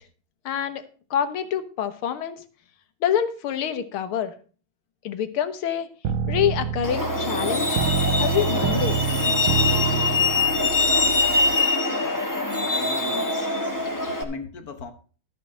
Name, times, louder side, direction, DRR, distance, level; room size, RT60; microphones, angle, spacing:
voice 1, 0.5-0.8 1.1-2.4 3.0-4.3 5.0-5.9 6.3-7.8 8.2-9.0, left 9 dB, 90° left, 2.0 m, -26 dB
sound 1, 6.0-11.6, right 7 dB, 80° right, 1.6 m, -27 dB
Truck, 6.8-14.2, left 3 dB, 10° left, 1.4 m, -23 dB
voice 2, 12.6-13.4 14.2-14.9, left 5 dB, 50° left, 1.4 m, -38 dB
13.5 x 5.7 x 6.2 m
omnidirectional pair, 2.3 m